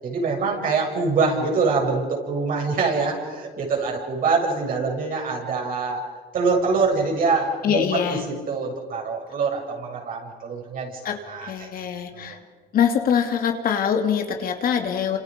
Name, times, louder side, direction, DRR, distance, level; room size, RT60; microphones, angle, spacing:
voice 1, 0.0-6.0 6.3-11.0 11.3-11.7 12.1-12.4, right 4 dB, 55° right, 0 dB, 7.2 m, -24 dB
voice 2, 7.6-8.2 11.0-12.4 12.7-15.2, left 7 dB, 60° left, 5 dB, 2.6 m, -23 dB
29.5 x 27.0 x 5.4 m, 1.4 s
cardioid pair, 110°, 17 cm